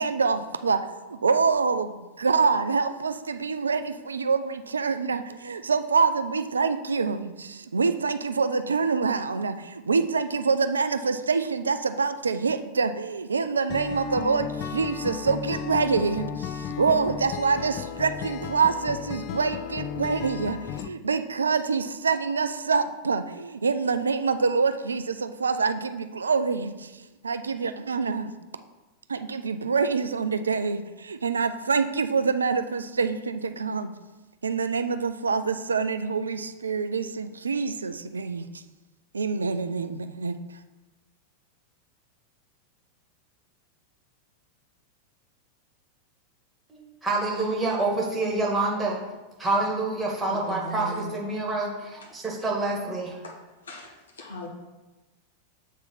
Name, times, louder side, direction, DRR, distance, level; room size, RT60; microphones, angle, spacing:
voice 1, 0.0-28.3 29.1-33.9 34.4-38.6 39.1-40.4, right 5 dB, 75° right, 10 dB, 0.4 m, -26 dB
Acoustic guitar, 13.7-20.9, left 8 dB, 40° left, 0.4 m, -34 dB
voice 2, 46.7-49.0 49.4-53.2, right 2 dB, 10° right, -3 dB, 1.9 m, -27 dB
voice 3, 50.3-51.2 53.2-53.4 53.6-53.9 54.2-54.5, equal, 70° left, -1 dB, 1.7 m, -38 dB
7.2 x 3.7 x 5.9 m, 1.1 s
figure-of-eight pair, 90°, 0 cm